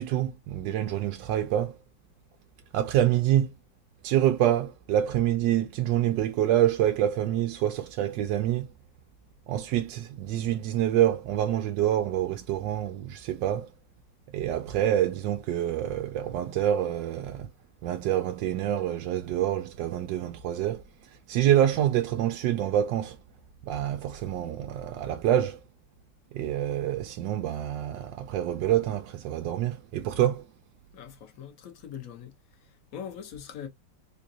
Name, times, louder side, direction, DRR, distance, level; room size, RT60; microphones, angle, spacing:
voice 1, 0.0-1.8 2.7-3.5 4.0-8.7 9.5-13.7 14.3-17.5 17.8-20.8 21.3-23.2 23.6-25.6 26.3-30.4, right 11 dB, 75° right, 1.2 m, -26 dB
voice 2, 30.9-32.3 32.6-33.7, left 8 dB, 55° left, 1.1 m, -42 dB
3.8 x 2.5 x 2.6 m
omnidirectional pair, 2.1 m